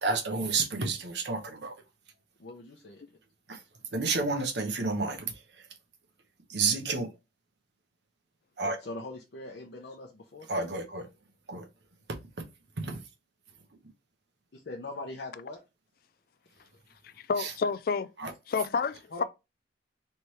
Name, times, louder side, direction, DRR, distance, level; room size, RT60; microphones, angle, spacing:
voice 1, 0.0-1.7 3.5-3.6 3.9-5.3 6.5-7.1 8.6-8.8 10.5-11.1 11.5-11.7 12.8-13.0 17.4-17.5 18.2-18.3, right 3 dB, 75° right, 1.0 m, -30 dB
voice 2, 2.4-3.0 8.8-10.5 14.5-15.6 19.1-19.2, left 2 dB, 70° left, 0.7 m, -41 dB
voice 3, 17.0-18.1 18.5-19.2, left 5 dB, 55° left, 0.3 m, -30 dB
3.4 x 3.2 x 4.3 m
head